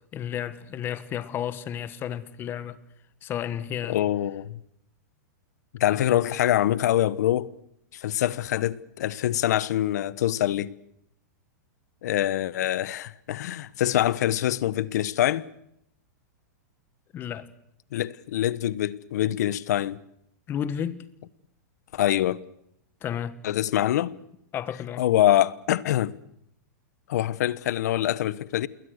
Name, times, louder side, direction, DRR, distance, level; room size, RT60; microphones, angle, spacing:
voice 1, 0.1-2.8 3.2-4.0 5.9-6.0 17.1-17.5 20.5-21.0 23.0-23.4 24.5-25.1, left 9 dB, 20° left, 1.4 m, -32 dB
voice 2, 3.9-4.6 5.7-7.5 7.9-10.7 12.0-15.5 17.9-20.0 21.9-22.4 23.4-24.2 24.7-26.2 27.1-28.7, left 12 dB, 65° left, 1.2 m, -25 dB
28.5 x 22.0 x 6.6 m
supercardioid pair, 155°, 10 cm